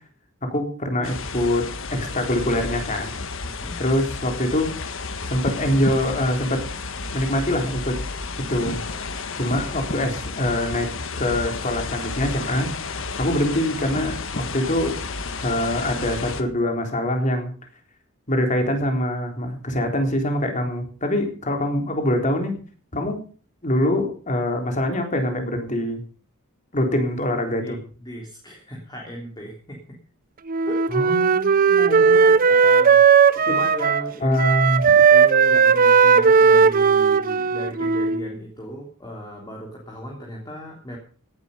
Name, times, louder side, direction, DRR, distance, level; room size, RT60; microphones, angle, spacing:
voice 1, 0.4-3.1 3.8-4.7 5.3-6.6 7.1-8.0 8.5-8.8 9.4-10.9 11.2-12.7 13.2-15.0 15.4-17.5 18.3-22.6 22.9-23.2 23.6-26.0 26.7-27.8 30.9-32.4 33.5-33.6 34.2-34.9, left 1 dB, 35° left, 4 dB, 3.8 m, -24 dB
sound 1, 1.0-16.4, left 4 dB, 65° left, 1.6 m, -31 dB
voice 2, 3.4-3.8 27.6-27.7 28.0-29.8 30.6-30.8 31.8-31.9 32.5-33.0 33.5-34.4 35.1-41.0, equal, 20° left, -1 dB, 3.2 m, -36 dB
Wind instrument woodwind instrument, 30.5-34.1 34.4-38.3, right 6 dB, 40° right, 0.7 m, -16 dB
17.5 x 11.0 x 5.4 m, 0.40 s
head